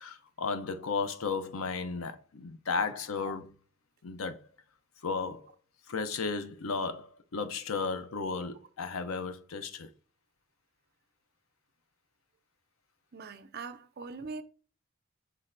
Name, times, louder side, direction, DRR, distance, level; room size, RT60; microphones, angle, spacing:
voice 1, 0.0-3.5 4.0-4.4 5.0-5.5 5.9-9.9, left 4 dB, 85° left, 0.6 m, -34 dB
voice 2, 13.1-14.4, right 4 dB, 50° right, 0.5 m, -41 dB
6.0 x 3.2 x 2.5 m
head